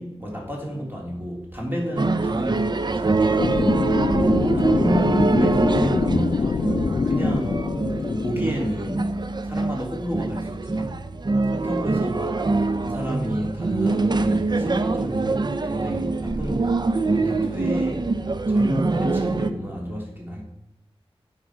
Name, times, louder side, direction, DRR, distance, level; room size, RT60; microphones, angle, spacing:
voice 1, 0.0-3.6 4.4-7.6 8.0-9.1 9.4-11.0 11.4-12.4 12.8-18.1 18.5-20.4, equal, 20° right, -2 dB, 3.1 m, -31 dB
sound 1, 2.0-19.5, right 3 dB, 45° right, 0.5 m, -24 dB
sound 2, 3.4-9.3, left 4 dB, 50° left, 0.4 m, -25 dB
9.5 x 6.7 x 5.0 m, 0.93 s
wide cardioid pair, 75°, 10 cm